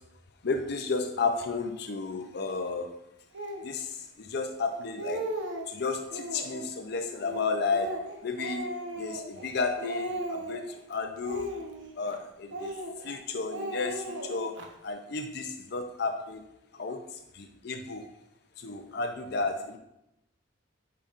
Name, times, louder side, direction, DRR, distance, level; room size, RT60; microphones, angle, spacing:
voice 1, 0.4-2.9 3.6-5.2 5.7-11.5 12.0-12.7 13.0-16.4 16.7-18.0 18.6-19.8, left 4 dB, 60° left, 6 dB, 0.5 m, -33 dB
Speech, 3.3-3.7 4.4-4.5 4.8-5.7 6.1-6.7 7.2-9.5 9.8-10.7 11.2-12.1 12.5-13.2 13.5-14.7, right 1 dB, 75° right, 0.9 m, -36 dB
8.8 x 5.6 x 2.5 m, 0.86 s
head